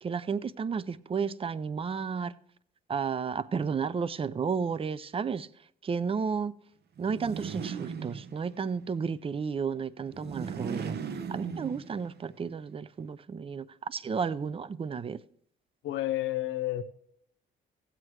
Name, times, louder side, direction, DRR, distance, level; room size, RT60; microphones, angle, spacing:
voice 1, 0.0-2.3 2.9-5.5 5.8-6.5 7.0-11.0 11.3-15.2, right 6 dB, 30° right, 0.5 m, -32 dB
sound 1, 7.0-8.7 10.1-12.2, right 6 dB, 55° right, 0.9 m, -37 dB
voice 2, 15.8-16.8, left 15 dB, 90° left, 0.9 m, -30 dB
16.5 x 7.9 x 3.1 m
cardioid pair, 80°, 20 cm